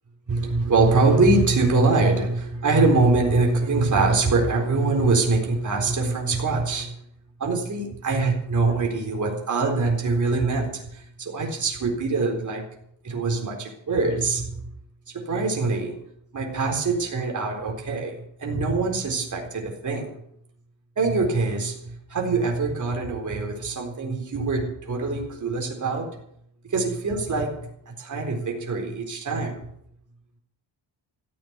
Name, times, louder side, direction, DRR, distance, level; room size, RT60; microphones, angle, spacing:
voice 1, 0.3-6.9 7.4-12.6 13.0-14.7 15.1-15.9 16.3-18.1 18.4-20.1 21.0-26.2 26.7-29.7, right 3 dB, 40° right, 0 dB, 4.0 m, -23 dB
14.5 x 8.7 x 8.2 m, 0.71 s
cardioid pair, 130°, 47 cm